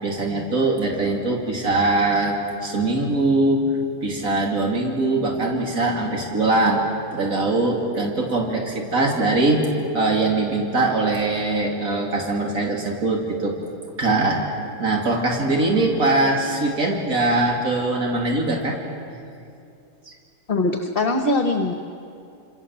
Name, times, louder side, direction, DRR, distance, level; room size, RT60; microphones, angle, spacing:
voice 1, 0.0-3.7 4.0-6.8 7.1-9.7 9.9-13.5 14.0-14.5 14.8-18.8 20.1-20.2, right 2 dB, 75° right, -1 dB, 3.3 m, -22 dB
voice 2, 20.5-21.7, left 2 dB, 40° left, 5 dB, 1.5 m, -21 dB
29.0 x 27.5 x 7.3 m, 2.6 s
omnidirectional pair, 1.5 m